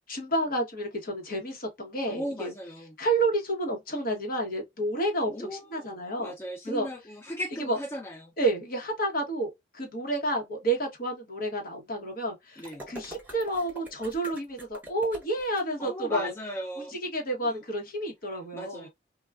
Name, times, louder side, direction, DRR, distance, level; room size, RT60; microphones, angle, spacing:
voice 1, 0.1-2.5 3.0-6.3 6.6-6.9 7.6-7.8 8.4-16.3 16.8-18.9, right 1 dB, 50° left, 1.0 m, -30 dB
voice 2, 2.1-3.0 5.3-8.3 12.6-12.8 15.8-17.0 17.4-17.6 18.5-18.9, equal, 15° left, 0.4 m, -37 dB
sound 1, 12.6-15.6, right 1 dB, 10° right, 1.0 m, -44 dB
3.4 x 2.2 x 2.3 m
head